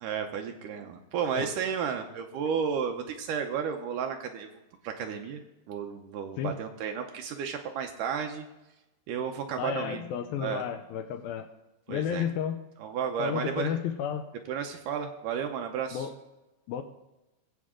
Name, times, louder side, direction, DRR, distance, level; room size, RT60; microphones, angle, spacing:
voice 1, 0.0-4.5 4.8-5.4 5.7-8.5 9.1-10.1 10.4-10.6 11.9-12.3 12.8-13.8 14.5-16.1, right 7 dB, 75° right, 4 dB, 1.9 m, -32 dB
voice 2, 9.6-11.5 11.9-12.6 13.2-14.3 15.9-16.1 16.7-16.8, left 8 dB, 80° left, 8 dB, 2.3 m, -32 dB
19.5 x 7.7 x 3.7 m, 1.0 s
omnidirectional pair, 4.6 m